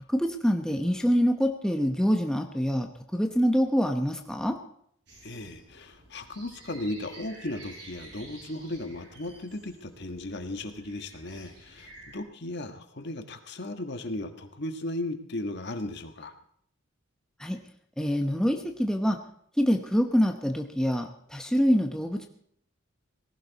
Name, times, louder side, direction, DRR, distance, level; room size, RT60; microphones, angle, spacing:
voice 1, 0.1-4.6 17.4-17.6 18.0-19.2 19.6-22.3, equal, 5° left, 4 dB, 0.9 m, -25 dB
sound 1, 5.1-12.2, right 2 dB, 55° right, 6.9 m, -51 dB
voice 2, 5.2-16.3, left 1 dB, 55° left, 7 dB, 1.6 m, -36 dB
18.5 x 16.5 x 4.1 m, 0.66 s
head